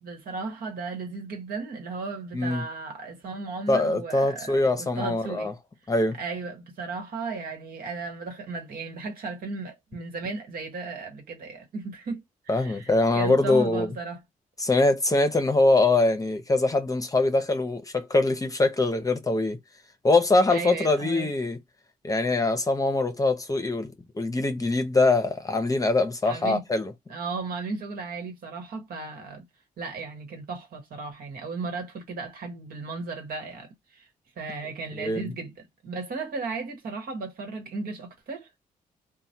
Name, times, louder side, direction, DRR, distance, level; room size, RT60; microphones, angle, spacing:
voice 1, 0.0-5.5 6.1-14.2 20.5-21.3 26.2-26.6 27.1-29.4 29.8-34.1 34.4-38.5, right 4 dB, 75° right, 1.2 m, -35 dB
voice 2, 2.3-2.6 3.7-5.5 5.9-6.2 12.5-13.9 14.6-19.6 20.0-21.6 22.0-26.9 35.0-35.3, left 2 dB, 20° left, 0.7 m, -23 dB
3.0 x 2.2 x 2.7 m
cardioid pair, 65°, 15 cm